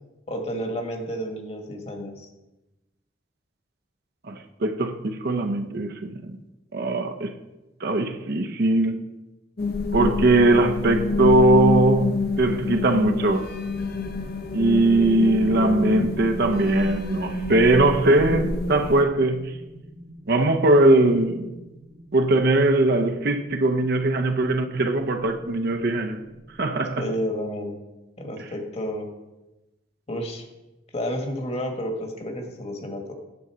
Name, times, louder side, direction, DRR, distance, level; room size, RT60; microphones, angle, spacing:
voice 1, 0.3-2.3 27.0-27.8 28.2-29.1 30.1-30.5 30.9-33.2, equal, 35° left, 1.3 m, -31 dB
voice 2, 4.3-6.4 6.7-7.3 7.8-9.0 9.9-13.5 14.5-19.6 20.3-21.5 22.1-26.2 26.6-27.1, right 2 dB, 55° right, 0.6 m, -20 dB
sound 1, 9.6-19.0, left 3 dB, 55° left, 0.8 m, -27 dB
sound 2, 14.9-26.7, equal, 35° right, 0.9 m, -45 dB
9.4 x 3.8 x 7.3 m
head